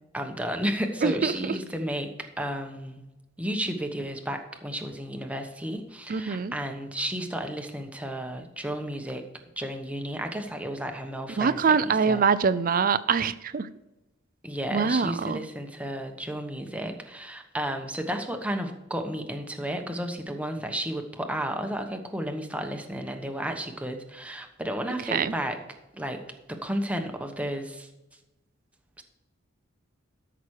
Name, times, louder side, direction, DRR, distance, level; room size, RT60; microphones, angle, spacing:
voice 1, 0.1-2.1 2.4-3.0 3.4-9.2 9.6-12.2 14.4-25.6 25.9-26.2 26.5-27.9 29.0-29.1, equal, 5° right, 4 dB, 1.1 m, -32 dB
voice 2, 1.0-1.5 6.1-6.5 11.4-13.7 14.7-15.4 25.1-25.3, right 5 dB, 45° right, 15 dB, 0.5 m, -24 dB
13.0 x 6.0 x 4.8 m, 0.99 s
head